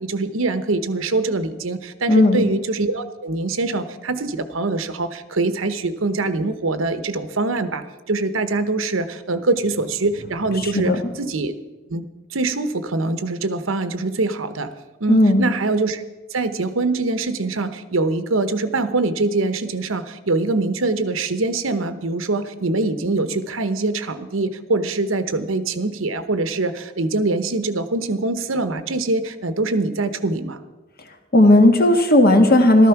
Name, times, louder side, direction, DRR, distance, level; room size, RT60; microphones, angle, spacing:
voice 1, 0.0-11.6 11.9-12.0 12.3-14.7 15.0-16.0 16.3-30.6, right 3 dB, 90° right, 11 dB, 1.0 m, -23 dB
voice 2, 2.1-2.4 10.6-11.0 15.1-15.4 31.3-32.9, left 1 dB, 50° left, 5 dB, 1.7 m, -14 dB
14.0 x 13.0 x 5.9 m, 1.2 s
head